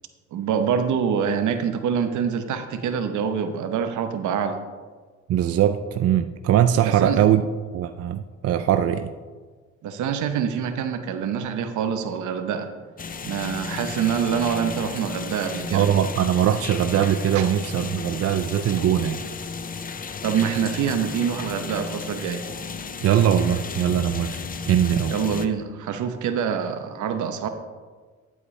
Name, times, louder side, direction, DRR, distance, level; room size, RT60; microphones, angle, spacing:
voice 1, 0.3-4.6 6.8-7.2 9.8-12.7 13.2-15.9 17.3-17.5 20.2-22.4 25.1-27.5, right 7 dB, 75° right, 8 dB, 0.9 m, -25 dB
voice 2, 5.3-7.4 7.7-9.1 15.7-19.2 23.0-25.2, right 10 dB, 55° right, 9 dB, 0.4 m, -21 dB
sound 1, 13.0-25.5, left 5 dB, 30° left, 0.6 m, -34 dB
11.0 x 8.4 x 3.2 m, 1.5 s
cardioid pair, 90°, 30 cm